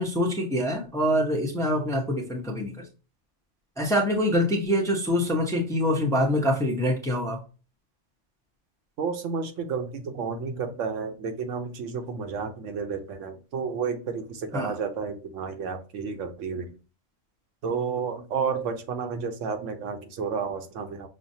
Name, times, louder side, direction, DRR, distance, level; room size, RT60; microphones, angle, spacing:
voice 1, 0.0-2.8 3.8-7.4 14.5-14.7, left 1 dB, 5° left, 0 dB, 0.6 m, -25 dB
voice 2, 9.0-16.7 17.6-21.1, right 5 dB, 80° right, 7 dB, 1.0 m, -31 dB
6.3 x 2.1 x 2.7 m, 0.33 s
omnidirectional pair, 1.3 m